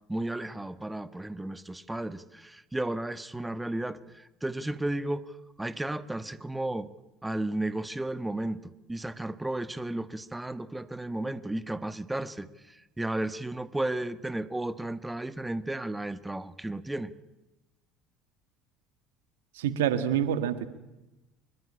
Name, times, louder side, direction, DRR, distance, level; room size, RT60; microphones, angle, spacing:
voice 1, 0.1-6.9 7.2-17.1, right 1 dB, 10° right, 13 dB, 1.3 m, -34 dB
voice 2, 19.5-20.7, right 9 dB, 80° right, 11 dB, 1.6 m, -27 dB
24.0 x 22.0 x 9.9 m, 1.0 s
hypercardioid pair, 65°, 0 cm